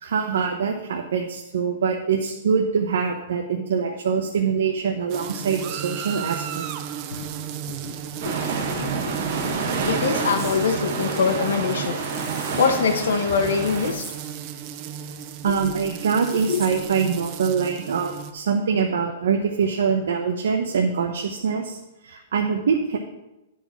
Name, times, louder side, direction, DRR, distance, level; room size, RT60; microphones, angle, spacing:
voice 1, 0.0-6.6 15.4-21.8 22.0-23.0, right 6 dB, 80° right, 2 dB, 0.9 m, -24 dB
sound 1, 5.1-18.3, right 9 dB, 30° right, 0.5 m, -35 dB
voice 2, 8.2-12.2 12.5-14.1 16.5-16.6, left 5 dB, 85° left, 6 dB, 1.2 m, -25 dB
sound 2, 8.2-13.9, right 4 dB, 45° right, 1.3 m, -28 dB
sound 3, 10.4-10.6 12.0-12.7 13.6-14.3 16.1-16.9, right 2 dB, 10° right, 1.3 m, -41 dB
10.0 x 4.8 x 5.7 m, 0.97 s
hypercardioid pair, 170°, 0 cm